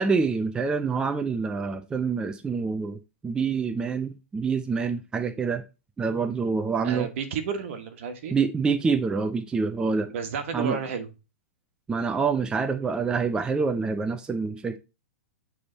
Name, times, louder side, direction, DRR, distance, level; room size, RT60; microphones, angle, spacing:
voice 1, 0.0-5.6 6.0-7.1 8.3-10.1 10.5-10.8 11.9-14.8, right 5 dB, 10° right, 0.5 m, -26 dB
voice 2, 6.8-8.3 10.1-11.1, right 6 dB, 60° right, 1.3 m, -31 dB
8.5 x 3.5 x 4.0 m
hypercardioid pair, 140°, 8 cm